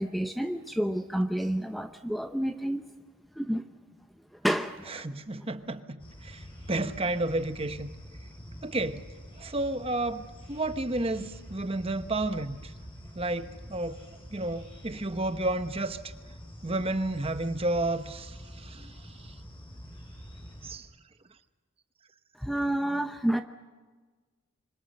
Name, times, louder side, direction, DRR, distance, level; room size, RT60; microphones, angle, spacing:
voice 1, 0.0-2.8 3.4-3.6 4.4-4.9 22.4-23.4, right 1 dB, ahead, 7 dB, 0.7 m, -29 dB
voice 2, 4.9-7.9 8.6-9.0 9.4-12.7 13.1-14.0 14.3-16.1 16.6-18.9 19.2-19.3 20.6-20.9, right 2 dB, 25° right, 10 dB, 1.0 m, -31 dB
sound 1, 6.0-20.8, equal, 25° left, 5.1 m, -46 dB
26.0 x 25.0 x 6.6 m, 1.4 s
head